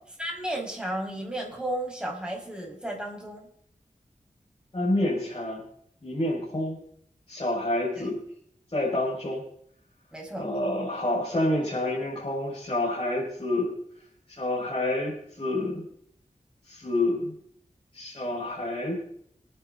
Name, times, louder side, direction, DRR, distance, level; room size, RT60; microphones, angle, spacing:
voice 1, 0.2-3.5 8.0-8.1 10.1-10.5, right 1 dB, 5° right, -1 dB, 5.5 m, -33 dB
voice 2, 4.7-5.6 6.0-6.8 7.3-8.1 8.7-9.4 10.4-13.7 14.3-15.8 16.7-17.3 17.9-19.0, left 1 dB, 40° left, -6 dB, 5.5 m, -28 dB
27.0 x 10.5 x 3.9 m, 0.67 s
wide cardioid pair, 65°, 14 cm